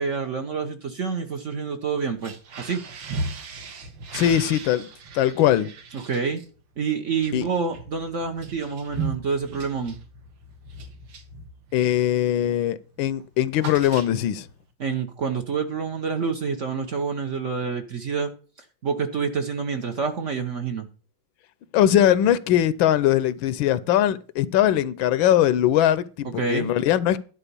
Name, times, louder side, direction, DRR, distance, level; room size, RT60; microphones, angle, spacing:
voice 1, 0.0-2.8 5.9-6.4 6.8-10.0 14.8-18.3 18.8-20.9 26.4-26.7, right 5 dB, 50° right, 1.0 m, -27 dB
sound 1, 2.1-12.0 12.4-12.7 12.9-14.5, right 3 dB, 75° right, 2.0 m, -37 dB
voice 2, 4.1-4.9 5.1-5.7 7.3-7.5 11.7-14.5 21.7-27.2, left 11 dB, 80° left, 1.4 m, -21 dB
11.0 x 4.5 x 6.8 m
omnidirectional pair, 2.1 m